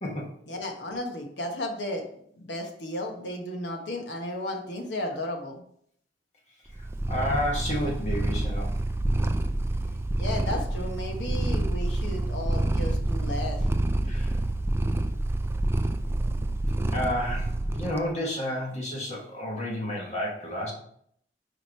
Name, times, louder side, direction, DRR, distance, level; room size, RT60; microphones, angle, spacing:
voice 1, 0.5-2.0 2.4-5.6 10.2-13.7, left 1 dB, 80° left, 2 dB, 1.2 m, -34 dB
Purr, 6.7-18.0, right 1 dB, 15° right, 0.4 m, -27 dB
voice 2, 7.1-8.7 14.1-14.3 16.4-16.5 16.9-20.7, equal, 40° left, -2 dB, 1.3 m, -31 dB
5.0 x 4.6 x 4.5 m, 0.67 s
head